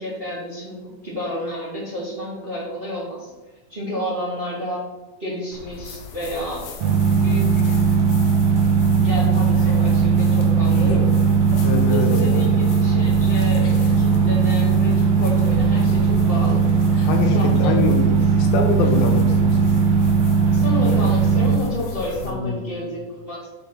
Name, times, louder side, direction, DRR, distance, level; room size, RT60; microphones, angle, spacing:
voice 1, 0.0-3.3 3.7-4.8 5.2-6.7 7.1-7.8 9.0-11.0 11.9-16.7 17.3-18.0 20.5-23.5, left 1 dB, 20° right, -5 dB, 1.7 m, -30 dB
sound 1, 5.5-22.3, left 6 dB, 65° left, 1.6 m, -37 dB
sound 2, 6.8-21.6, right 6 dB, 75° right, 1.7 m, -18 dB
voice 2, 11.6-12.5 17.0-18.0 18.4-19.7 22.2-22.8, left 4 dB, 85° left, 4 dB, 3.0 m, -24 dB
6.5 x 6.4 x 6.0 m, 1.1 s
omnidirectional pair, 4.1 m